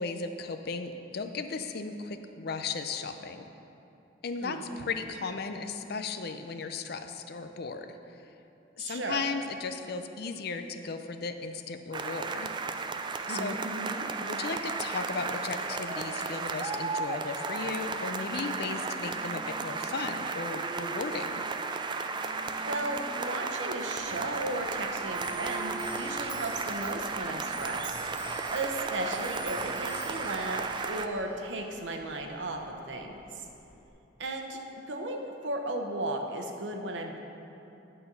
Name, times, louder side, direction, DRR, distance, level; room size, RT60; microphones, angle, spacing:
voice 1, 0.0-3.4 4.2-8.2 8.8-12.7 13.3-13.6 14.2-21.4, left 4 dB, 60° left, 8 dB, 0.5 m, -36 dB
voice 2, 4.4-4.8 8.8-9.2 13.3-14.1 22.6-33.5 34.2-34.6 34.9-37.2, right 2 dB, 75° right, 3 dB, 0.9 m, -35 dB
sound 1, 11.9-31.1, right 4 dB, 25° right, 0.3 m, -34 dB
sound 2, 18.3-33.4, right 1 dB, 45° right, 0.8 m, -49 dB
Clock, 24.0-33.9, equal, 10° right, 2.0 m, -48 dB
11.0 x 4.4 x 6.8 m, 2.8 s
head